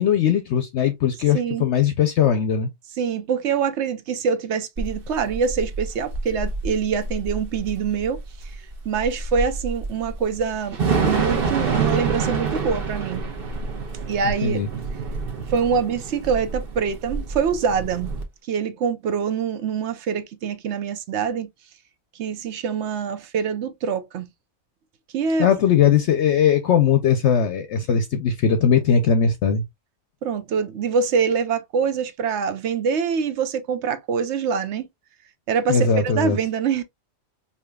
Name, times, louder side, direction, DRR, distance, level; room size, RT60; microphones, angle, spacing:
voice 1, 0.0-2.7 14.4-14.7 25.4-29.6 35.7-36.4, left 7 dB, 65° left, 0.8 m, -19 dB
voice 2, 1.3-1.6 3.0-8.5 8.8-13.2 14.1-14.6 15.5-18.1 18.5-21.5 22.2-24.3 25.1-25.5 30.2-34.9 35.5-36.8, right 6 dB, 65° right, 0.8 m, -24 dB
Thunder / Rain, 4.8-18.2, right 4 dB, 45° right, 1.1 m, -27 dB
4.9 x 2.8 x 2.2 m
omnidirectional pair, 1.4 m